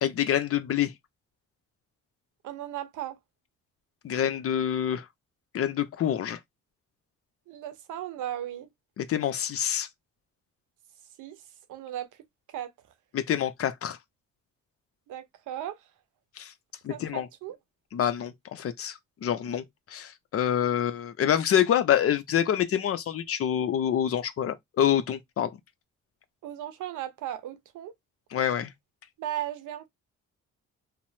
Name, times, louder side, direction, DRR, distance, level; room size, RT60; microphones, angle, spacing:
voice 1, 0.0-0.9 4.0-5.1 5.5-6.4 9.0-9.9 13.1-14.0 16.4-16.5 16.8-17.3 17.9-25.5 28.3-28.7, left 9 dB, 50° left, 0.6 m, -26 dB
voice 2, 2.4-3.2 7.5-8.7 11.2-11.4 11.7-12.1 12.5-12.7 15.1-15.9 16.9-17.6 26.4-27.9 29.2-29.9, right 12 dB, 80° right, 0.8 m, -36 dB
2.9 x 2.0 x 2.7 m
cardioid pair, 90°, 30 cm